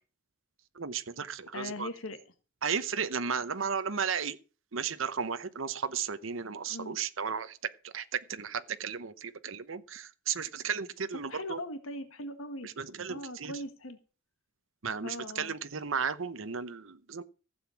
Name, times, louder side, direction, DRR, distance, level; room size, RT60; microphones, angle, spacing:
voice 1, 0.8-1.9 2.6-4.4 4.7-11.6 12.6-13.5 14.8-17.2, right 6 dB, 70° right, 0.9 m, -34 dB
voice 2, 1.5-2.2 6.7-7.0 11.1-12.7 13.1-14.0 15.0-15.5, left 1 dB, 85° left, 1.8 m, -40 dB
15.5 x 8.0 x 7.2 m
head